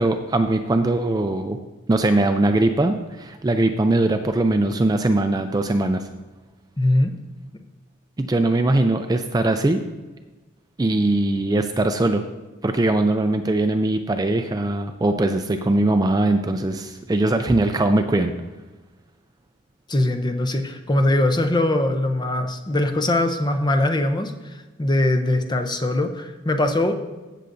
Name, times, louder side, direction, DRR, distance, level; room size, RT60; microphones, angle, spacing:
voice 1, 0.0-1.6 1.9-6.1 8.2-9.8 10.8-12.2 12.6-18.3, right 2 dB, 20° right, 7 dB, 0.3 m, -21 dB
voice 2, 6.8-7.1 19.9-26.9, left 1 dB, 20° left, 6 dB, 0.6 m, -21 dB
16.0 x 6.7 x 2.6 m, 1.2 s
head